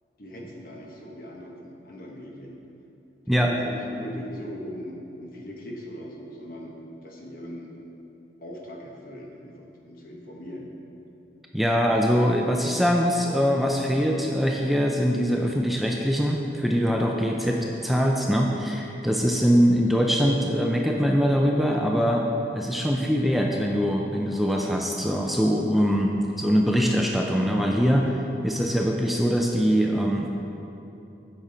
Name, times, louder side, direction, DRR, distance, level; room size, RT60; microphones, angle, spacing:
voice 1, 0.2-2.6 3.2-7.7 8.4-10.7, equal, 50° left, 0 dB, 1.1 m, -40 dB
voice 2, 11.5-22.2 22.5-30.4, equal, ahead, 0 dB, 0.4 m, -23 dB
8.8 x 6.2 x 4.2 m, 2.9 s
head